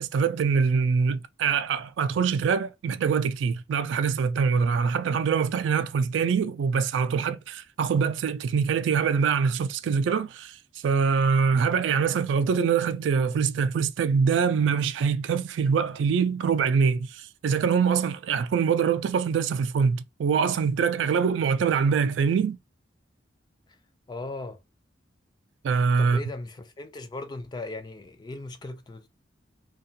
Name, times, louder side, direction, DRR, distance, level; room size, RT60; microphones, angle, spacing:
voice 1, 0.0-10.6 10.8-22.6 25.6-26.2, right 6 dB, 75° right, 0.3 m, -24 dB
voice 2, 24.1-24.6 26.0-29.1, left 2 dB, 25° left, 0.3 m, -38 dB
2.4 x 2.3 x 2.7 m
head